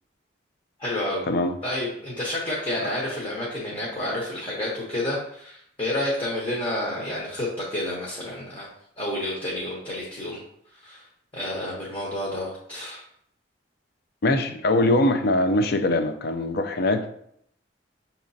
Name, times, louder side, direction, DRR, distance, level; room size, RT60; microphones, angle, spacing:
voice 1, 0.8-1.2 1.6-8.7 9.0-10.4 10.8-11.0 11.3-13.0, left 1 dB, 30° left, -4 dB, 0.9 m, -30 dB
voice 2, 14.2-17.1, left 2 dB, 60° left, 8 dB, 0.4 m, -22 dB
6.2 x 2.9 x 2.7 m, 0.69 s
head